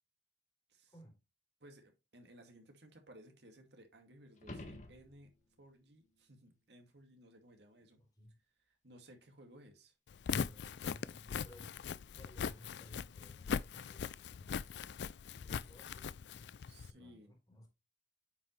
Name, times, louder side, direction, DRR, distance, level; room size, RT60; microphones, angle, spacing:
voice 1, 0.9-1.2 8.0-8.4 10.3-11.8 12.1-14.6 15.4-16.1 16.9-17.7, equal, 20° left, 3.7 m, -59 dB
voice 2, 1.6-8.0 8.8-9.9 16.7-17.3, right 1 dB, 70° right, 2.3 m, -59 dB
sound 1, 4.4-5.6 10.5-10.6, left 1 dB, 40° left, 1.6 m, -49 dB
Walk footsteps, 10.1-16.9, left 6 dB, 75° left, 0.4 m, -40 dB
9.4 x 5.6 x 3.2 m
head